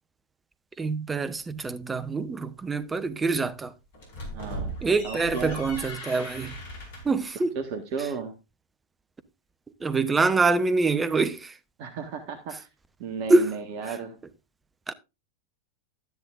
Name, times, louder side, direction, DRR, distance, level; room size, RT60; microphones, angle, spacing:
voice 1, 0.8-3.7 4.8-6.5 7.1-7.5 9.8-11.5 13.3-13.4 14.9-15.0, right 3 dB, 15° right, 0.8 m, -25 dB
sound 1, 3.9-7.2, right 1 dB, 55° left, 4.9 m, -37 dB
voice 2, 4.3-5.7 7.3-8.3 11.8-12.7 13.0-14.2, right 5 dB, 45° right, 1.5 m, -34 dB
12.5 x 10.5 x 2.5 m
figure-of-eight pair, 90°, 0 cm